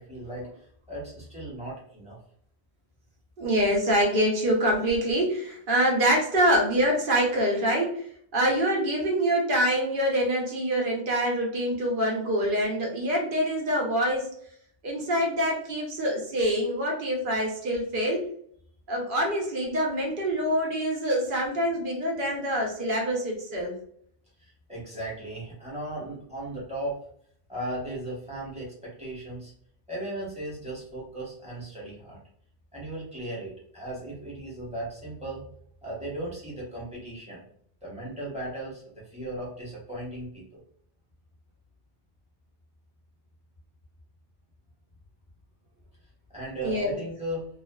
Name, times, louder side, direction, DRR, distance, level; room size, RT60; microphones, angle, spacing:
voice 1, 0.0-2.2 24.7-27.0 27.5-29.5 29.9-32.2 32.7-35.4 35.8-37.4 37.8-38.8 39.1-40.6 46.3-47.4, right 1 dB, 5° right, -6 dB, 1.0 m, -36 dB
voice 2, 3.4-8.0 8.3-14.3 14.8-18.2 18.9-23.7 46.6-47.0, equal, 55° right, -1 dB, 0.9 m, -25 dB
2.5 x 2.3 x 2.2 m, 0.63 s
omnidirectional pair, 1.1 m